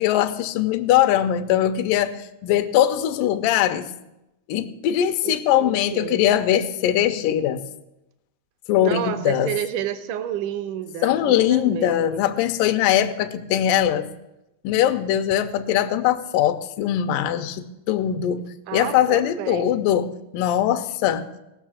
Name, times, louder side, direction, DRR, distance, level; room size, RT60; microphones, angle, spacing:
voice 1, 0.0-2.2 2.4-3.9 4.5-7.6 8.7-9.5 11.0-14.1 14.6-18.4 18.7-20.1 20.3-21.3, left 11 dB, 80° left, 8 dB, 2.0 m, -21 dB
voice 2, 5.2-6.2 8.8-12.2 18.7-19.7, right 10 dB, 75° right, 10 dB, 2.0 m, -30 dB
17.0 x 6.4 x 7.4 m, 0.91 s
omnidirectional pair, 4.5 m